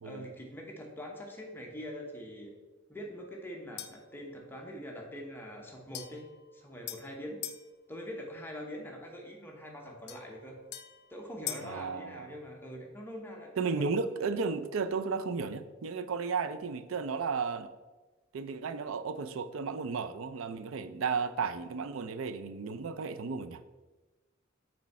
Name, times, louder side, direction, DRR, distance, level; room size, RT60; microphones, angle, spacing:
voice 1, 0.0-2.5 2.9-6.3 6.5-7.4 7.9-10.6 11.1-13.9, equal, 10° left, 0 dB, 0.9 m, -43 dB
sound 1, 3.8-4.1 5.9-7.7 10.1-11.8, left 11 dB, 55° left, 0.4 m, -43 dB
voice 2, 11.6-12.3 13.6-17.7 18.3-23.6, right 5 dB, 70° right, 12 dB, 0.4 m, -34 dB
6.1 x 4.4 x 4.2 m, 1.2 s
head